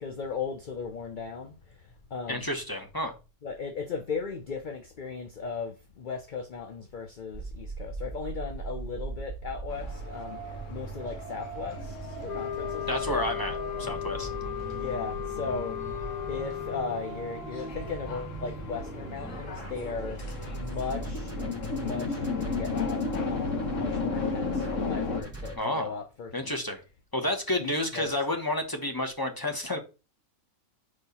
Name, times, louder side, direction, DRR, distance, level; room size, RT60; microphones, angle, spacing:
voice 1, 0.0-1.8 2.1-2.5 3.4-13.2 14.7-20.2 20.5-21.4 21.7-26.5 27.6-28.1, left 5 dB, 45° left, 0.7 m, -37 dB
voice 2, 2.3-3.2 12.9-14.3 25.6-26.0 26.3-26.8 27.1-29.8, left 1 dB, 15° left, 0.9 m, -30 dB
sound 1, 7.3-25.6, right 3 dB, 10° right, 2.0 m, -39 dB
sound 2, 9.7-25.2, left 4 dB, 60° left, 1.5 m, -36 dB
sound 3, 12.3-17.2, left 14 dB, 80° left, 1.2 m, -36 dB
4.9 x 4.5 x 5.4 m
omnidirectional pair, 1.6 m